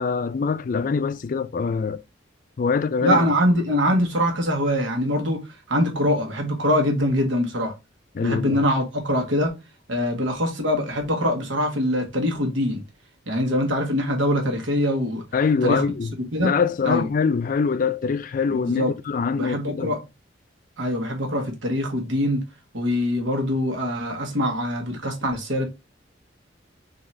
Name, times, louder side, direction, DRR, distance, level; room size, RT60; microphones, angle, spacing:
voice 1, 0.0-2.0 2.6-3.2 8.2-8.6 15.3-16.1 16.4-19.9, left 5 dB, 45° left, 0.3 m, -24 dB
voice 2, 3.0-5.4 5.7-7.7 8.2-9.5 9.9-12.8 13.3-15.2 15.6-15.8 16.3-16.5 16.8-17.1 18.5-18.9 19.4-20.0 20.8-22.4 22.7-25.6, equal, 80° right, 1.4 m, -23 dB
3.8 x 2.8 x 4.2 m
head